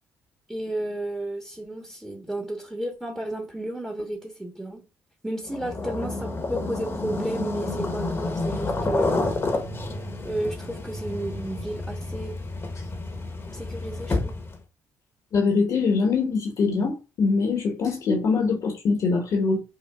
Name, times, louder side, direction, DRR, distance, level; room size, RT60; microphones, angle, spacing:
voice 1, 0.5-4.8 5.2-9.2 10.2-12.4 13.5-14.4, right 1 dB, 5° right, 1.0 m, -32 dB
sound 1, 5.5-14.6, left 2 dB, 35° left, 0.9 m, -29 dB
voice 2, 15.3-19.6, left 4 dB, 65° left, 1.0 m, -23 dB
5.6 x 2.2 x 2.3 m
supercardioid pair, 70°, 7 cm